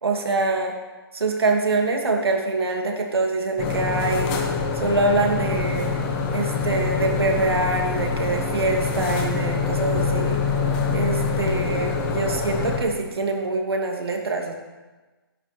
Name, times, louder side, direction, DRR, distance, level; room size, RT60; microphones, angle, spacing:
voice 1, 0.0-0.7 1.1-4.4 4.7-5.9 6.3-10.4 10.9-14.5, right 3 dB, 75° right, 2 dB, 2.6 m, -24 dB
sound 1, 3.6-12.8, left 4 dB, 25° left, 1.7 m, -25 dB
12.5 x 11.0 x 4.5 m, 1.2 s
hypercardioid pair, 145°, 13 cm